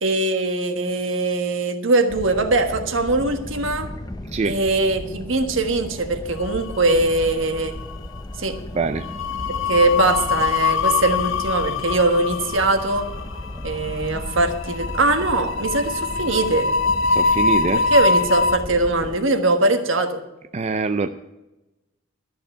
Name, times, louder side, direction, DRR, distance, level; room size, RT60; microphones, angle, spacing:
voice 1, 0.0-3.9 4.4-7.7 8.4-8.6 9.7-13.1 13.6-16.7 17.9-20.2, right 2 dB, 65° right, 7 dB, 1.4 m, -21 dB
sound 1, 2.1-19.2, left 1 dB, 20° left, 0.6 m, -35 dB
sound 2, 6.5-7.3 7.6-7.8 9.0-18.6, left 4 dB, 65° left, 0.7 m, -23 dB
voice 2, 8.7-9.1 17.1-17.9 20.5-21.1, right 4 dB, 30° right, 9 dB, 0.4 m, -24 dB
12.5 x 6.7 x 8.8 m, 1.0 s
head